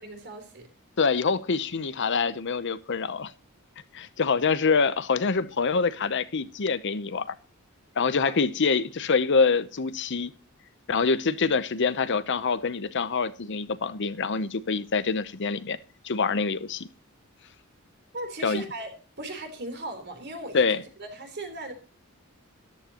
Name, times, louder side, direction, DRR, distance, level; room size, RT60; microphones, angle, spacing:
voice 1, 0.0-0.7 8.2-8.4 18.1-20.7 21.0-21.7, right 1 dB, 50° right, 3.5 m, -37 dB
voice 2, 1.0-3.3 3.9-7.3 8.0-10.3 10.9-15.8 16.0-16.9 18.4-18.6 20.5-20.8, left 5 dB, 55° left, 0.8 m, -25 dB
14.0 x 11.5 x 2.9 m
head